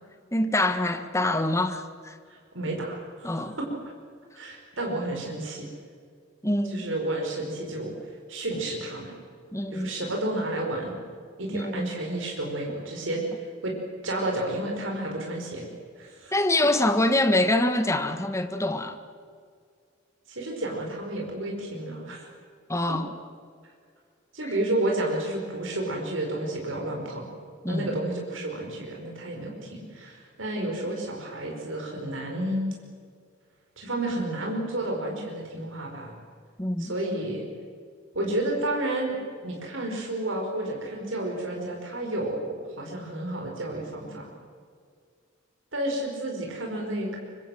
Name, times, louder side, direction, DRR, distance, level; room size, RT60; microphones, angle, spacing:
voice 1, 0.3-2.2 3.2-3.6 6.4-6.9 9.5-9.9 11.5-11.9 16.3-19.0 22.7-23.1 27.6-27.9 36.6-36.9, left 1 dB, 15° left, 8 dB, 1.6 m, -25 dB
voice 2, 2.3-3.7 4.4-5.7 6.7-7.9 8.3-9.1 9.7-11.0 11.4-13.7 14.0-15.7 16.0-16.4 20.3-22.2 24.3-27.3 27.7-32.7 33.8-36.1 36.8-37.4 38.1-44.3 45.7-47.2, right 1 dB, 80° right, 0 dB, 5.0 m, -31 dB
25.0 x 24.5 x 7.8 m, 2.1 s
head